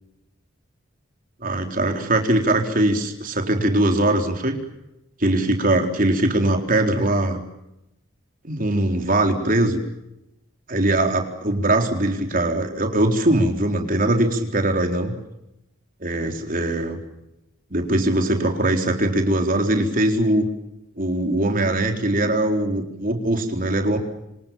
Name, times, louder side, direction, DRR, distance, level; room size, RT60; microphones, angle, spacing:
voice 1, 1.4-4.6 5.2-7.4 8.4-9.8 10.7-15.1 16.0-17.0 17.7-20.5 21.0-24.0, right 1 dB, 45° right, 4 dB, 4.1 m, -21 dB
27.5 x 26.5 x 7.2 m, 0.89 s
head